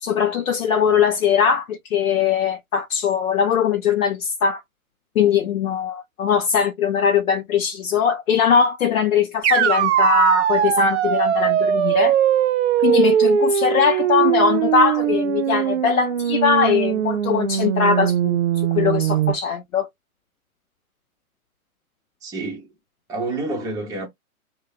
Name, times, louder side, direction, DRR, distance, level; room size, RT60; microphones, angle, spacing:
voice 1, 0.0-4.6 5.2-12.1 12.8-18.4 18.7-19.9, left 7 dB, 65° left, 0.6 m, -20 dB
sound 1, 9.4-19.3, right 10 dB, 50° right, 0.7 m, -20 dB
voice 2, 22.2-22.7 23.1-24.1, right 2 dB, 10° right, 0.7 m, -28 dB
2.4 x 2.2 x 4.0 m
figure-of-eight pair, 115°, 43 cm